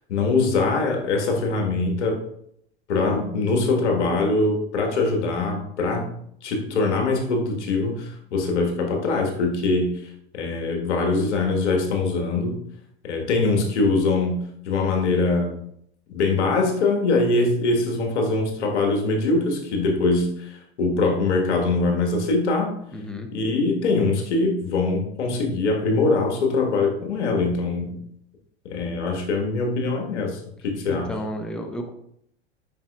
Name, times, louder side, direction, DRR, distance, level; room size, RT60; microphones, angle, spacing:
voice 1, 0.1-2.2 2.9-6.1 6.4-12.6 13.0-15.6 16.1-22.7 23.3-28.0 28.6-31.1, left 3 dB, 75° left, 2 dB, 1.5 m, -23 dB
voice 2, 22.9-23.3 30.9-31.9, equal, ahead, 4 dB, 0.7 m, -32 dB
7.6 x 5.6 x 2.3 m, 0.71 s
hypercardioid pair, 95°, 35 cm